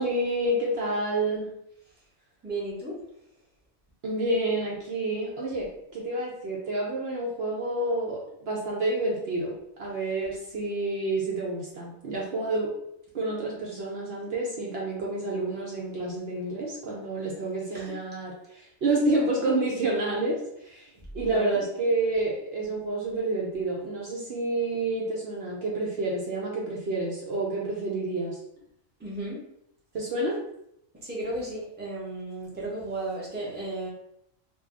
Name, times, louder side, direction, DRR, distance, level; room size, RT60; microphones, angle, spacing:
voice 1, 0.0-1.5 4.0-9.5 9.8-12.7 13.1-20.4 20.6-20.9 21.1-28.4 29.9-30.4, right 2 dB, 60° right, -3 dB, 0.8 m, -29 dB
voice 2, 2.4-2.9 17.7-18.0 21.2-21.6 29.0-29.4 31.0-33.9, right 2 dB, 10° right, -6 dB, 0.8 m, -34 dB
2.7 x 2.2 x 3.5 m, 0.75 s
omnidirectional pair, 1.3 m